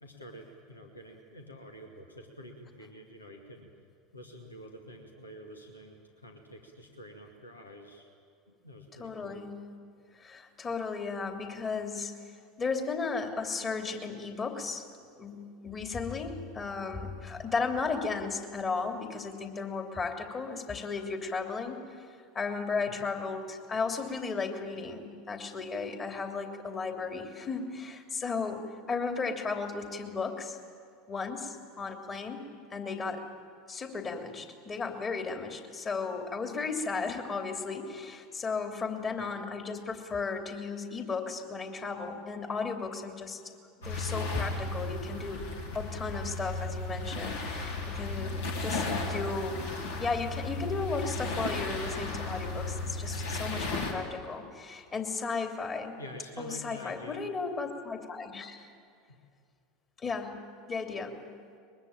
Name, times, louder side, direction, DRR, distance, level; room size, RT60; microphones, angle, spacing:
voice 1, 0.0-3.7 4.1-8.1 8.5-9.4 22.9-23.1 39.2-39.4 56.0-57.3 57.6-57.7, equal, 85° left, 2 dB, 2.3 m, -48 dB
voice 2, 9.0-9.7 10.2-12.2 12.6-14.9 15.2-22.0 22.3-30.6 31.1-32.4 32.7-33.2 33.7-43.4 43.8-45.5 45.7-49.6 50.0-56.0 56.4-58.7 60.0-61.3, left 4 dB, 30° left, 4 dB, 3.1 m, -35 dB
sound 1, 43.8-53.9, left 2 dB, 70° left, 3.5 m, -35 dB
23.0 x 21.5 x 9.0 m, 2.3 s
figure-of-eight pair, 75°, 0 cm